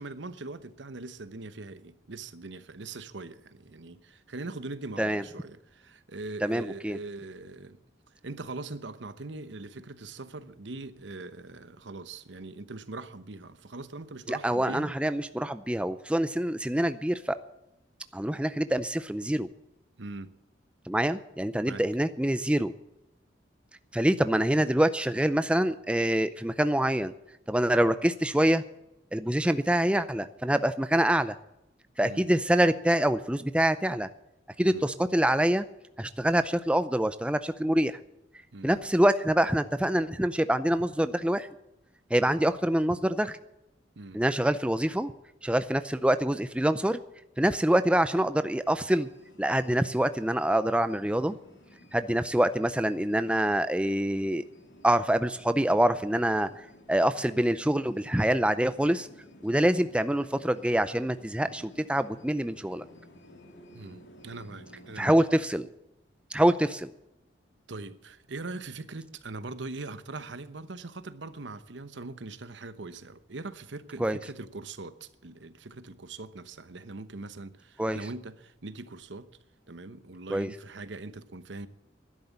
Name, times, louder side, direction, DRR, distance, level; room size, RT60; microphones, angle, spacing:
voice 1, 0.0-7.8 8.2-14.9 20.0-20.4 21.6-21.9 32.0-32.3 34.7-34.9 38.5-38.7 42.2-42.4 44.0-44.2 63.7-65.2 67.7-79.3 79.7-81.7, right 3 dB, 75° right, 1.0 m, -41 dB
voice 2, 6.4-7.0 14.3-17.4 18.1-19.5 20.9-22.7 23.9-27.1 27.5-28.6 29.1-31.3 32.0-34.1 34.6-35.7 36.0-38.0 38.6-41.5 42.1-43.4 44.1-45.1 45.4-47.0 47.4-49.1 49.4-51.4 51.9-54.4 54.8-56.5 56.9-59.1 59.4-62.8 65.0-65.7 66.3-66.9 74.0-74.2 77.8-78.0 80.3-80.5, right 1 dB, 5° right, 0.5 m, -25 dB
sound 1, 48.8-65.5, left 1 dB, 75° left, 2.6 m, -54 dB
12.0 x 10.5 x 8.6 m
head